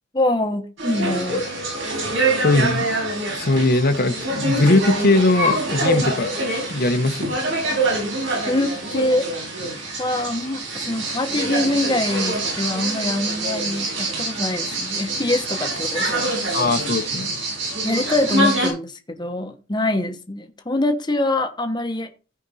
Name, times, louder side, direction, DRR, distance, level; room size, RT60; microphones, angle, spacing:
voice 1, 0.1-1.5 8.5-9.7 10.0-16.4 17.8-22.1, left 1 dB, 25° left, 5 dB, 1.1 m, -24 dB
sound 1, 0.8-18.7, right 2 dB, 70° right, 6.4 m, -25 dB
voice 2, 2.4-2.8 3.3-6.3 6.7-7.2 16.5-17.3, left 2 dB, 50° left, 7 dB, 1.0 m, -19 dB
15.0 x 5.2 x 4.1 m, 0.33 s
head